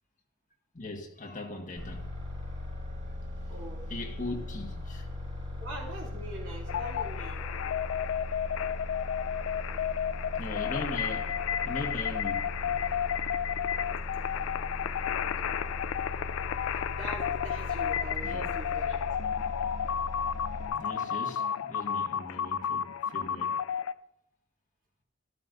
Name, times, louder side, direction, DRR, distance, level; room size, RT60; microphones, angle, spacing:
voice 1, 0.7-2.1 3.1-3.2 3.9-5.1 9.9-10.0 10.4-13.0 15.6-15.8 18.2-18.5 20.7-23.6, left 2 dB, 40° left, 1.5 m, -40 dB
sound 1, 1.7-20.7, left 1 dB, 40° right, 4.0 m, -39 dB
voice 2, 3.5-3.9 5.5-7.5 15.3-15.7 16.9-19.0, right 1 dB, 70° right, 2.5 m, -43 dB
sound 2, 6.7-23.9, left 8 dB, 85° left, 0.3 m, -32 dB
12.5 x 12.0 x 2.6 m
head